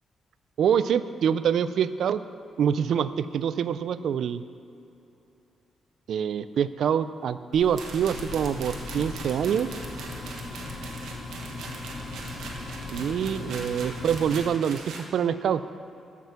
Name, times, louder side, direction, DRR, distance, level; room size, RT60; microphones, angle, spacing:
voice 1, 0.6-2.2 2.6-4.4 6.1-9.7 12.9-15.6, right 8 dB, 65° right, 14 dB, 0.4 m, -25 dB
sound 1, 7.5-14.4, left 3 dB, 75° left, 2.1 m, -38 dB
sound 2, 7.8-15.1, right 4 dB, 85° right, 1.4 m, -41 dB
14.5 x 5.9 x 5.8 m, 2.8 s
wide cardioid pair, 155°, 0 cm